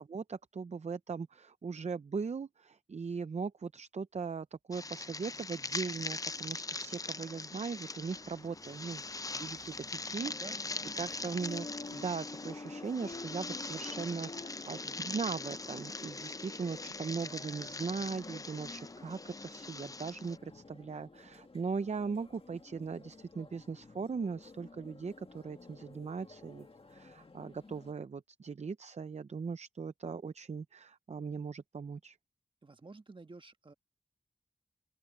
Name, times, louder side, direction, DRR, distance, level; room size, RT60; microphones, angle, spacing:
voice 1, 0.1-10.3 11.0-32.2, right 5 dB, 50° right, 0.6 m, -39 dB
sound 1, 4.7-20.4, left 3 dB, 25° left, 0.5 m, -42 dB
Car / Accelerating revving vroom, 5.1-14.5, right 4 dB, 75° right, 5.3 m, -68 dB
sound 2, 10.2-27.9, left 3 dB, 40° left, 2.0 m, -51 dB
voice 2, 10.3-11.2 32.6-33.7, right 3 dB, 35° right, 1.4 m, -52 dB
open air
wide cardioid pair, 90°, 15 cm